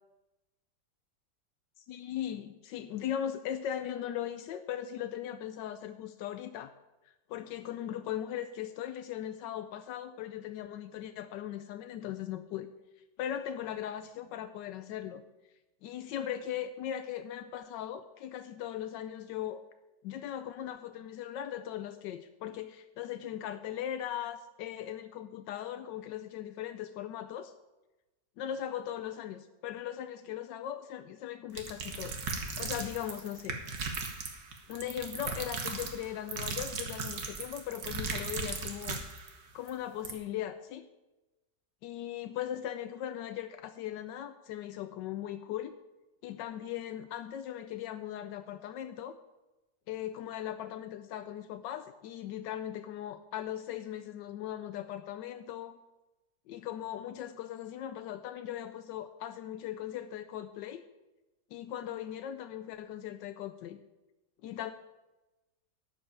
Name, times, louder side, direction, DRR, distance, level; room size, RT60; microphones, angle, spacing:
voice 1, 1.8-6.7 7.0-12.7 13.2-15.2 15.8-19.6 20.0-27.5 28.4-33.6 34.7-39.0 39.5-40.9 41.8-45.7 46.2-49.2 49.9-55.8 56.5-60.8 61.5-63.8 64.4-64.7, left 10 dB, 85° left, 10 dB, 1.3 m, -39 dB
sound 1, 31.5-39.3 39.7-39.8 40.0-40.1, right 4 dB, 60° right, 1.9 m, -37 dB
12.0 x 5.7 x 8.6 m, 1.0 s
omnidirectional pair, 1.9 m